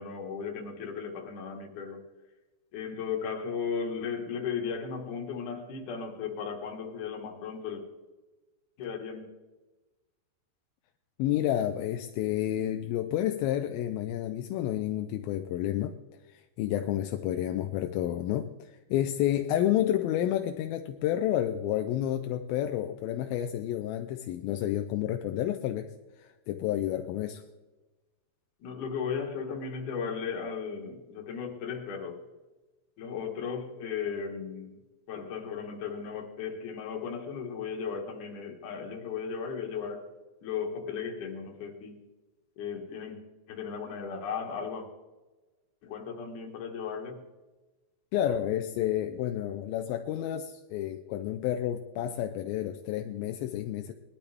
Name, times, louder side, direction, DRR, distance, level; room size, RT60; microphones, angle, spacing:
voice 1, 0.0-2.0 2.7-7.8 8.8-9.2 28.6-32.2 33.0-34.8 35.1-40.0 40.4-42.0 42.6-43.2 43.5-44.9 45.8-47.2, left 6 dB, 55° left, 1 dB, 2.8 m, -36 dB
voice 2, 11.2-15.9 16.3-25.9 26.2-27.4 48.1-53.9, left 12 dB, 80° left, 6 dB, 2.2 m, -30 dB
21.0 x 12.0 x 3.5 m, 1.2 s
omnidirectional pair, 4.8 m